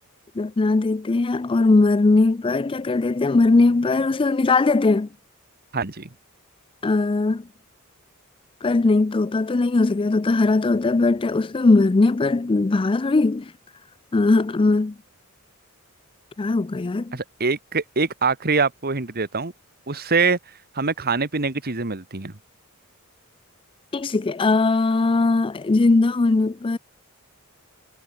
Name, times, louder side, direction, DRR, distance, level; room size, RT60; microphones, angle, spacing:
voice 1, 0.4-5.1 6.8-7.4 8.6-13.5 14.1-14.9 16.4-17.2 23.9-26.8, left 3 dB, 25° left, 0.4 m, -19 dB
voice 2, 5.7-6.1 17.1-19.5 19.9-20.4 20.7-22.3, right 4 dB, 45° right, 1.7 m, -24 dB
head